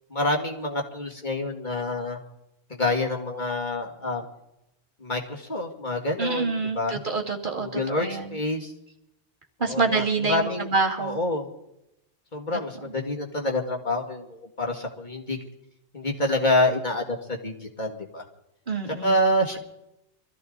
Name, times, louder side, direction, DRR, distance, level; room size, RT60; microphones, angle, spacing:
voice 1, 0.1-2.2 2.8-4.2 5.0-7.0 7.6-8.7 9.7-10.7 11.0-11.5 12.3-15.4 15.9-18.2 19.0-19.6, left 1 dB, 45° left, 1 dB, 2.5 m, -27 dB
voice 2, 6.2-8.4 9.6-11.2 18.7-19.2, right 4 dB, 50° right, 0 dB, 2.2 m, -27 dB
24.0 x 14.5 x 4.0 m, 0.85 s
omnidirectional pair, 1.1 m